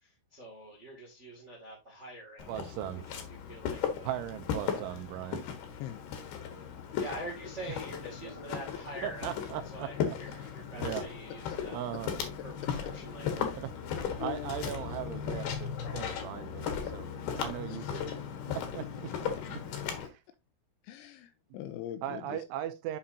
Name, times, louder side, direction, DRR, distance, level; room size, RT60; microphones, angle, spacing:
voice 1, 0.0-2.7 3.1-4.1 4.6-4.8 6.9-11.8 12.4-13.4, right 1 dB, 60° right, 0.7 m, -45 dB
Walk footsteps, 2.4-20.1, left 7 dB, 65° left, 2.8 m, -37 dB
voice 2, 2.5-3.1 4.0-5.4 7.7-7.8 8.3-8.4 9.0-9.9 10.3-10.4 10.7-11.0 11.7-12.1 13.6-13.7 14.2-17.1 17.4-18.1 18.5-19.6 20.0-20.2 22.0-23.0, right 12 dB, 85° right, 2.9 m, -38 dB
voice 3, 14.2-14.5 17.7-18.0 20.8-22.4, left 12 dB, 85° left, 2.8 m, -42 dB
8.6 x 5.7 x 2.7 m
omnidirectional pair, 5.8 m